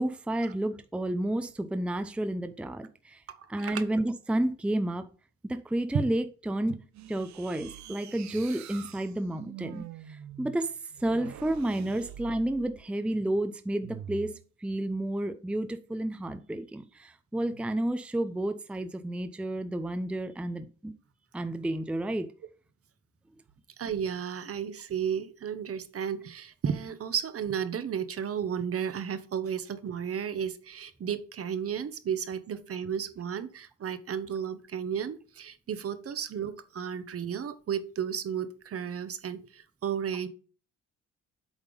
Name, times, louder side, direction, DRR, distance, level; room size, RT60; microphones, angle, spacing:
voice 1, 0.0-3.2 3.5-5.1 5.4-6.8 7.1-10.7 11.0-20.9 21.3-22.3, right 1 dB, 5° right, 0.6 m, -31 dB
voice 2, 3.3-3.8 5.9-6.0 23.8-40.3, right 8 dB, 50° right, 1.0 m, -33 dB
sound 1, 6.9-12.9 13.8-14.4, right 11 dB, 65° right, 0.7 m, -45 dB
8.1 x 3.6 x 5.3 m
cardioid pair, 90°, 30 cm